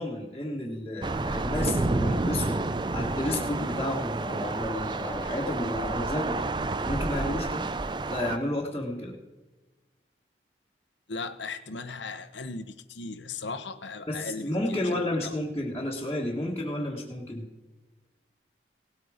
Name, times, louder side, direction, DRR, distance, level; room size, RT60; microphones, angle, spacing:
voice 1, 0.0-2.6 2.9-6.5 6.8-7.7 8.1-9.1 14.1-17.5, left 1 dB, 15° left, -6 dB, 1.5 m, -31 dB
Thunder / Rain, 1.0-8.4, right 2 dB, 25° right, 0.4 m, -30 dB
voice 2, 11.1-15.4, left 3 dB, 80° left, 8 dB, 0.9 m, -38 dB
18.0 x 8.3 x 5.0 m, 1.2 s
head